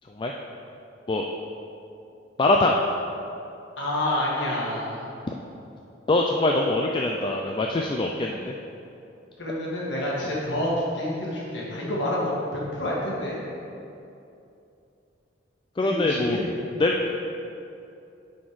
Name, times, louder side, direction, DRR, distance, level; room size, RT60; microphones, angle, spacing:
voice 1, 2.4-2.8 6.1-8.5 15.8-16.4 16.8-17.0, left 2 dB, 25° left, 1 dB, 0.3 m, -23 dB
voice 2, 3.8-5.2 9.4-13.4 15.8-16.7, left 1 dB, 65° left, -5 dB, 1.7 m, -28 dB
9.1 x 4.3 x 4.8 m, 2.7 s
head